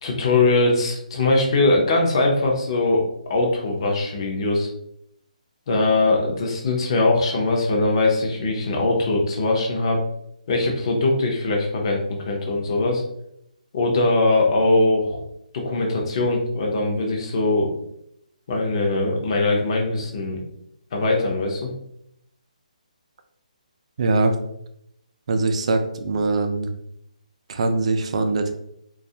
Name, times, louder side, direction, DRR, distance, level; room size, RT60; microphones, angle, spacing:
voice 1, 0.0-4.7 5.7-10.0 10.5-13.0 13.7-15.2 15.5-17.7 18.5-20.4 20.9-21.7, left 2 dB, 40° left, 0 dB, 0.6 m, -21 dB
voice 2, 24.0-24.3 25.3-26.7 27.5-28.5, right 3 dB, 50° right, 6 dB, 0.3 m, -22 dB
2.3 x 2.0 x 2.7 m, 0.76 s
hypercardioid pair, 155°, 4 cm